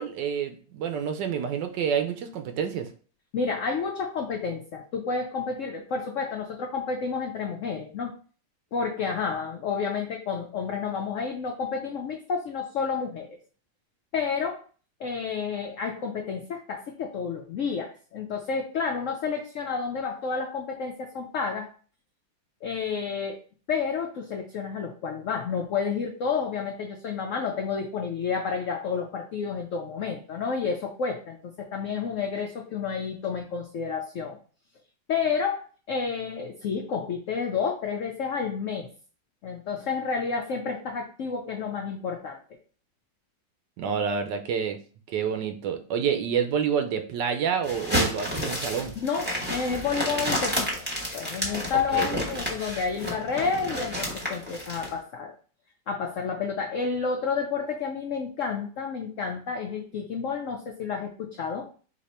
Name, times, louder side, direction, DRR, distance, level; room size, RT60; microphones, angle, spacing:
voice 1, 0.0-2.9 43.8-44.8 45.1-48.9 51.9-52.1, right 7 dB, 80° right, 7 dB, 1.2 m, -28 dB
voice 2, 3.3-8.1 8.7-13.3 14.1-14.6 15.0-21.7 22.6-23.4 23.7-34.4 35.1-38.9 39.4-42.4 49.0-50.8 51.1-55.3 55.9-61.7, left 5 dB, 70° left, 2 dB, 0.7 m, -30 dB
sound 1, 47.6-54.9, equal, 5° right, 1.1 m, -30 dB
4.2 x 2.8 x 4.2 m, 0.41 s
omnidirectional pair, 1.9 m